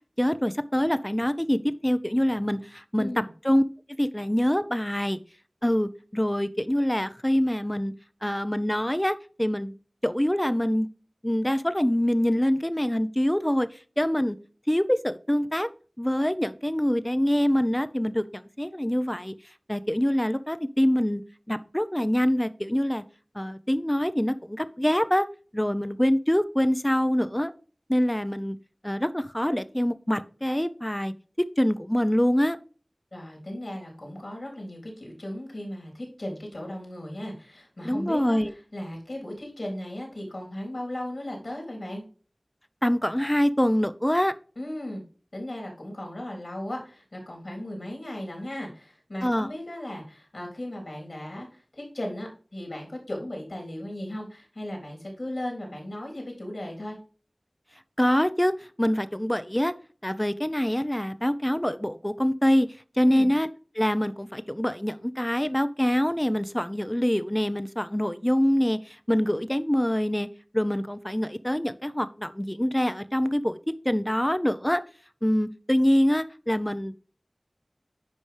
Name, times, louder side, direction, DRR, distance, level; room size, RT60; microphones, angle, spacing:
voice 1, 0.2-3.1 3.4-3.6 4.0-5.2 5.6-7.9 8.2-9.7 10.0-10.9 11.2-13.7 14.0-14.4 14.7-15.7 16.0-19.3 19.7-21.2 21.5-23.0 23.3-25.3 25.5-27.5 27.9-28.6 28.8-31.1 31.6-32.6 37.8-38.5 42.8-44.3 49.2-49.5 58.0-58.5 58.8-59.7 60.0-62.7 63.0-63.5 63.7-70.3 70.5-73.6 73.8-74.8 75.2-77.0, equal, 15° left, 13 dB, 0.7 m, -25 dB
voice 2, 3.0-3.3 33.1-38.4 38.7-42.0 44.6-45.0 45.3-57.0 63.0-63.3, left 1 dB, 75° left, 0 dB, 3.7 m, -36 dB
9.8 x 5.1 x 3.4 m, 0.39 s
wide cardioid pair, 45°, 0 cm